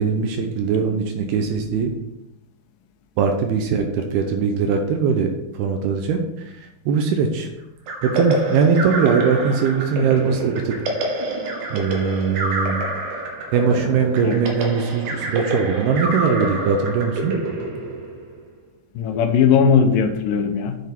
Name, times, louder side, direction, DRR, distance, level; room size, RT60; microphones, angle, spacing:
voice 1, 0.0-1.9 3.2-5.3 5.6-6.2 6.9-7.5 8.0-10.8 11.7-12.8 13.5-17.3, right 6 dB, 80° right, 4 dB, 2.7 m, -20 dB
sound 1, 7.9-18.4, right 2 dB, 60° right, 2.4 m, -27 dB
voice 2, 19.0-20.8, left 6 dB, 70° left, 6 dB, 2.2 m, -18 dB
8.1 x 7.2 x 4.5 m, 0.88 s
omnidirectional pair, 4.6 m